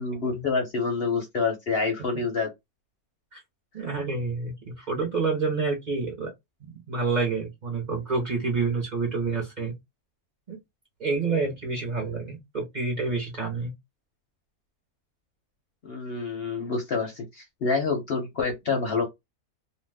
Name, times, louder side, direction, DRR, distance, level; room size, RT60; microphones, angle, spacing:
voice 1, 0.0-2.5 15.8-19.1, left 4 dB, 55° left, 0.7 m, -27 dB
voice 2, 3.7-6.3 6.6-9.7 10.5-10.6 11.0-13.7, right 4 dB, 40° right, 0.8 m, -28 dB
2.5 x 2.2 x 3.3 m
omnidirectional pair, 1.5 m